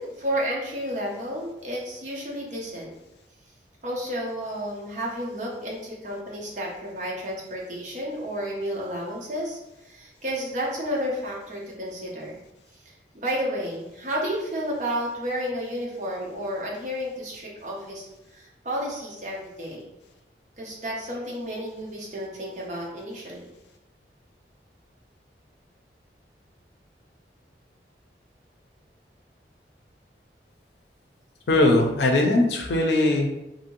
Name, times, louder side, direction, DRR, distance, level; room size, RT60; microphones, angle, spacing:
voice 1, 0.0-2.9 3.8-12.4 12.8-19.8 20.6-23.5, equal, 45° right, -3 dB, 0.6 m, -31 dB
voice 2, 31.5-33.3, left 2 dB, 80° left, 2 dB, 0.5 m, -20 dB
2.7 x 2.6 x 2.9 m, 0.93 s
head